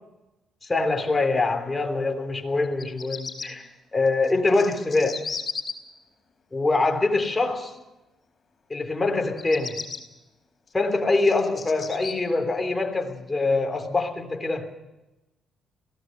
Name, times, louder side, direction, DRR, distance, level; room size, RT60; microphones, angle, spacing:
voice 1, 0.7-5.2 6.5-7.7 8.7-9.9 10.7-14.7, left 3 dB, 20° left, 3.3 m, -24 dB
Bird vocalization bird call bird song, 2.6-3.5 4.2-5.7 9.3-10.0 10.7-12.1, left 5 dB, 40° left, 4.2 m, -35 dB
23.0 x 17.0 x 6.7 m
cardioid pair, 90°, 0 cm